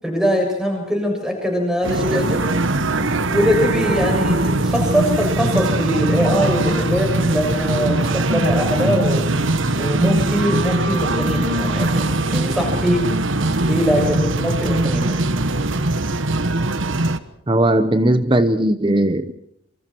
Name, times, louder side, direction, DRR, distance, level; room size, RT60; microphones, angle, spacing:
voice 1, 0.0-2.5 3.3-9.3 9.7-13.1 13.7-15.2, equal, 5° right, 1 dB, 7.1 m, -22 dB
sound 1, 1.8-17.2, right 2 dB, 75° right, 1.3 m, -21 dB
voice 2, 17.5-19.3, right 1 dB, 25° right, 11 dB, 0.9 m, -17 dB
27.0 x 25.5 x 4.6 m, 0.73 s
head